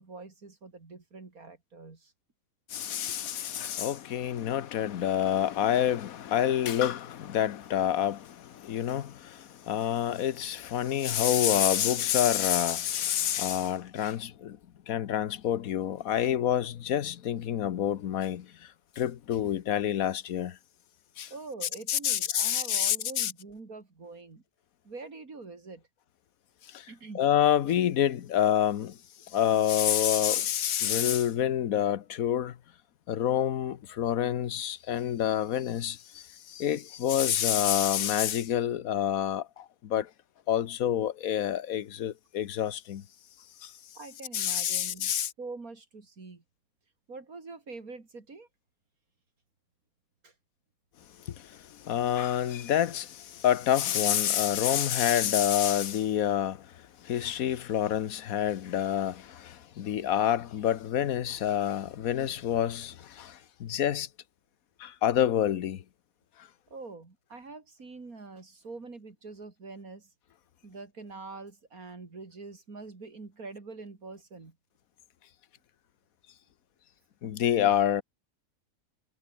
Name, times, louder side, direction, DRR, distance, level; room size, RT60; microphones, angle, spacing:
voice 1, 0.0-2.1 21.3-24.4 24.8-25.8 26.9-27.3 44.0-45.1 45.4-46.4 47.1-48.5 50.2-50.3 66.7-70.1 70.6-74.6 77.2-77.4, right 3 dB, 75° right, 3.6 m, -44 dB
voice 2, 2.7-8.2 8.6-9.1 9.7-14.6 14.9-18.4 19.0-20.5 21.2-21.3 21.9-23.3 27.1-28.9 29.3-32.5 33.1-36.0 36.6-39.4 39.9-40.0 40.5-43.0 44.3-45.3 51.9-53.1 53.4-56.6 57.1-59.1 59.8-62.9 63.6-64.1 64.8-65.8 77.2-78.0, left 10 dB, 70° left, 1.4 m, -27 dB
omnidirectional pair, 1.5 m